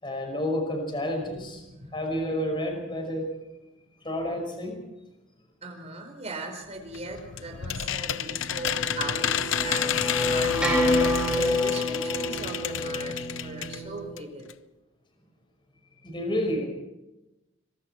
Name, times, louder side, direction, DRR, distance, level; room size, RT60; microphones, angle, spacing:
voice 1, 0.0-1.6 1.9-3.3 4.0-4.8 16.0-16.6, left 1 dB, 25° left, 3 dB, 5.5 m, -29 dB
voice 2, 1.2-2.0 5.6-11.0 11.3-14.5, right 2 dB, 35° right, 3 dB, 4.8 m, -39 dB
sound 1, 6.9-13.8 14.2-14.3 14.5-14.6, left 9 dB, 75° left, 0.7 m, -30 dB
sound 2, 8.3-14.1, left 1 dB, 5° right, 7.2 m, -28 dB
25.5 x 23.5 x 4.5 m, 0.99 s
head